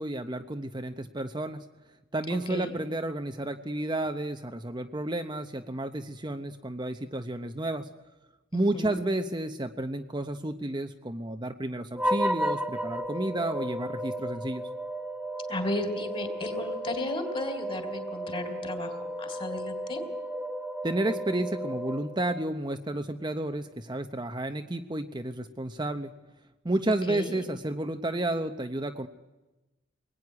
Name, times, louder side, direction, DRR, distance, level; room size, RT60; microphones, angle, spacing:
voice 1, 0.0-1.6 2.1-7.9 8.5-14.7 20.8-26.1 26.6-29.1, right 1 dB, 20° right, 6 dB, 0.9 m, -31 dB
voice 2, 2.3-2.7 8.5-9.0 15.5-20.0 27.1-27.4, left 1 dB, 30° left, 7 dB, 3.3 m, -34 dB
sound 1, 11.9-22.5, equal, 5° right, 1.2 m, -34 dB
25.0 x 20.5 x 9.7 m, 1.1 s
head